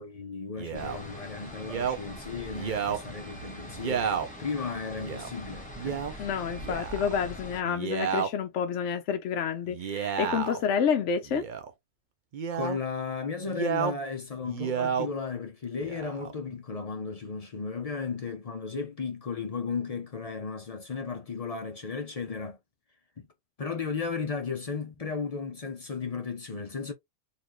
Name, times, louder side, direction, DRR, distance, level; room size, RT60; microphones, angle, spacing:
voice 1, 0.0-6.2 12.5-22.6 23.2-23.3 23.6-26.9, left 5 dB, 45° left, 0.4 m, -35 dB
Male speech man speaking, 0.6-1.0 1.6-2.0 2.5-3.0 3.7-4.3 5.0-5.3 5.8-6.1 6.6-7.1 7.6-8.3 9.7-10.6 11.3-11.7 12.3-12.8 13.5-14.0 14.4-15.1 15.7-16.3, right 7 dB, 50° right, 0.6 m, -31 dB
sound 1, 0.7-7.6, equal, 5° left, 1.0 m, -43 dB
voice 2, 6.2-11.5, left 7 dB, 65° left, 0.8 m, -29 dB
4.1 x 2.5 x 3.0 m
omnidirectional pair, 1.5 m